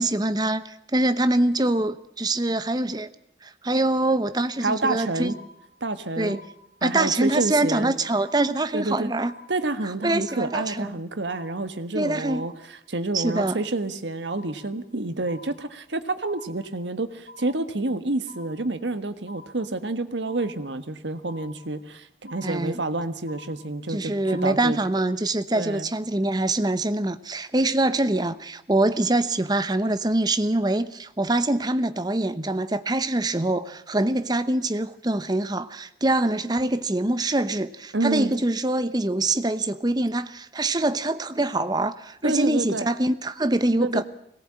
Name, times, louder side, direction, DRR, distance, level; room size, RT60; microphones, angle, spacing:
voice 1, 0.0-3.1 3.4-5.4 6.2-6.4 6.8-9.3 10.0-10.9 11.9-12.5 13.1-13.6 22.4-22.8 23.9-44.0, right 2 dB, 25° right, 0.9 m, -24 dB
voice 2, 4.6-5.4 5.8-6.4 6.8-7.9 8.7-9.1 9.5-12.5 12.9-24.8 25.5-25.9 37.9-38.4 42.2-42.9 43.8-44.0, right 2 dB, 85° right, 1.5 m, -28 dB
sound 1, 5.3-5.9 6.3-6.9 7.3-7.9 8.3-8.9 9.3-9.9 10.3-10.9 11.3-11.9 12.3-12.9 13.3-13.9 14.3-14.9 15.3-15.9 16.3-16.9 17.3-17.9 18.3-18.9 19.3-19.9 20.3-20.9 21.3-21.9 22.3-22.9 23.3-23.9 24.3-24.9, left 2 dB, 50° left, 6.4 m, -48 dB
21.5 x 18.0 x 8.6 m
head